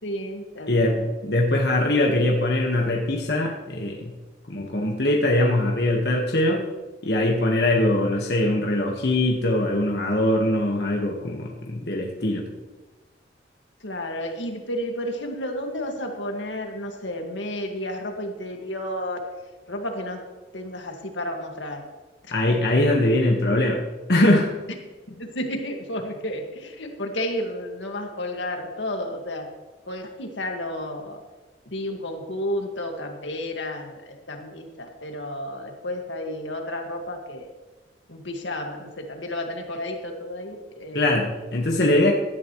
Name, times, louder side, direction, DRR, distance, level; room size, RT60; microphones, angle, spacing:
voice 1, 0.0-1.1 13.8-19.2 19.7-20.2 20.5-21.9 22.2-22.3 25.1-29.5 29.9-31.2 31.7-37.5 38.1-41.1, left 1 dB, 85° left, 3 dB, 1.9 m, -32 dB
voice 2, 0.7-1.0 1.2-4.1 4.5-6.7 7.0-12.4 22.3-23.8 24.1-24.5 40.9-42.1, left 1 dB, 60° left, 0 dB, 1.4 m, -22 dB
16.5 x 12.0 x 3.1 m, 1.2 s
head